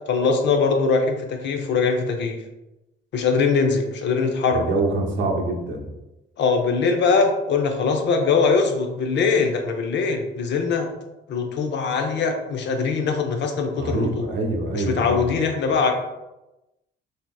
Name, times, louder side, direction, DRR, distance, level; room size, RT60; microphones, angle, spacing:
voice 1, 0.1-2.4 3.1-4.7 6.4-10.9 11.3-14.3 14.7-15.9, left 4 dB, 65° left, 4 dB, 0.6 m, -22 dB
voice 2, 4.5-5.9 13.8-15.2, right 2 dB, 70° right, 0 dB, 0.7 m, -25 dB
3.4 x 2.7 x 2.3 m, 0.97 s
cardioid pair, 90°, 20 cm